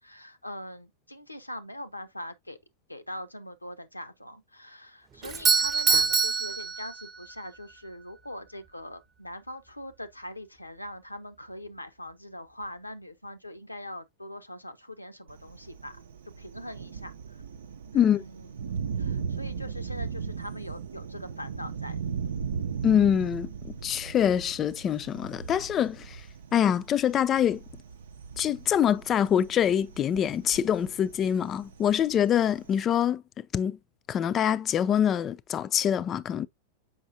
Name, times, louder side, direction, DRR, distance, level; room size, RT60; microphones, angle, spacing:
voice 1, 0.0-2.6 2.9-16.0 16.4-17.4 17.9-18.5 19.0-22.0, left 1 dB, 85° left, 0.8 m, -42 dB
Doorbell, 5.2-7.4, right 5 dB, 25° right, 0.9 m, -25 dB
Thunder, 15.3-32.8, right 6 dB, 65° right, 0.6 m, -38 dB
voice 2, 22.8-26.2 26.5-27.6 28.4-33.8 34.1-36.5, left 9 dB, 30° left, 0.5 m, -25 dB
7.1 x 5.5 x 2.7 m
figure-of-eight pair, 90°, 0 cm